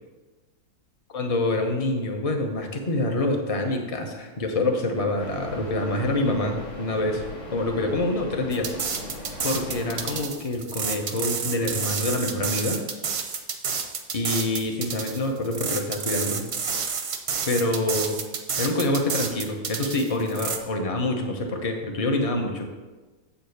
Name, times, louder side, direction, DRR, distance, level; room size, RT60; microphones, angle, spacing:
voice 1, 1.1-7.3 7.5-8.7 9.4-12.8 14.1-16.5 17.4-18.2 18.6-22.7, left 2 dB, 45° left, 3 dB, 0.4 m, -26 dB
sound 1, 5.2-10.2, left 1 dB, 90° left, 2.6 m, -38 dB
sound 2, 8.5-20.6, right 6 dB, 55° right, 0.6 m, -30 dB
7.9 x 5.1 x 6.5 m, 1.2 s
omnidirectional pair, 2.1 m